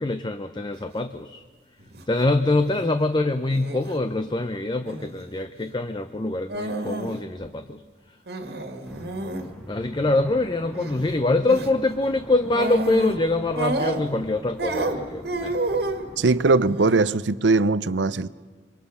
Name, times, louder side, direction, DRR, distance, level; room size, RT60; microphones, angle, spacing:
voice 1, 0.0-1.4 2.1-7.8 9.7-15.5, left 2 dB, 25° left, 0.7 m, -24 dB
sound 1, 1.8-2.0 2.4-2.9 3.5-3.9 4.9-5.3 6.5-7.2 7.5-7.6 8.3-9.5 10.7-11.1 11.5-11.7 12.5-13.2 13.6-14.3 14.6-16.1 16.6-17.1, right 2 dB, 60° right, 2.0 m, -30 dB
sound 2, 8.8-16.7, equal, ahead, 2.1 m, -44 dB
voice 2, 16.2-18.3, right 3 dB, 85° right, 0.7 m, -20 dB
26.0 x 24.5 x 5.7 m
head